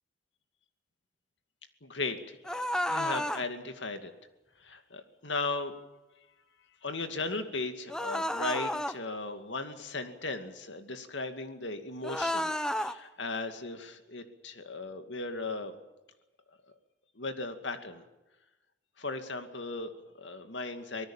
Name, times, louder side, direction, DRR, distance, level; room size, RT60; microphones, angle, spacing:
voice 1, 1.8-4.1 4.6-5.7 6.8-15.7 17.2-18.0 19.0-21.1, left 3 dB, 80° left, 7 dB, 2.3 m, -37 dB
sound 1, 2.4-3.4 7.9-8.9 12.0-12.9, left 1 dB, 5° left, 0.8 m, -31 dB
25.5 x 19.0 x 7.3 m, 1.0 s
head